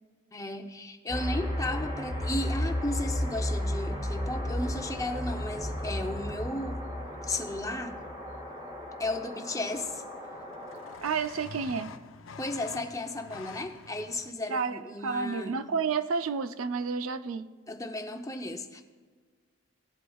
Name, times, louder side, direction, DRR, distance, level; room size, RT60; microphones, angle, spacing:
voice 1, 0.3-6.8 7.2-8.0 9.0-10.0 12.4-15.7 17.7-18.8, left 2 dB, 15° left, 5 dB, 0.6 m, -34 dB
sound 1, 1.1-11.0, left 1 dB, 25° right, 2.3 m, -34 dB
sound 2, 5.7-6.2 8.4-8.5 8.7-9.2 9.5-14.3, left 5 dB, 70° left, 0.5 m, -47 dB
voice 2, 11.0-11.9 14.5-17.5, right 5 dB, 80° right, 12 dB, 0.5 m, -30 dB
17.0 x 8.1 x 2.3 m, 1.5 s
head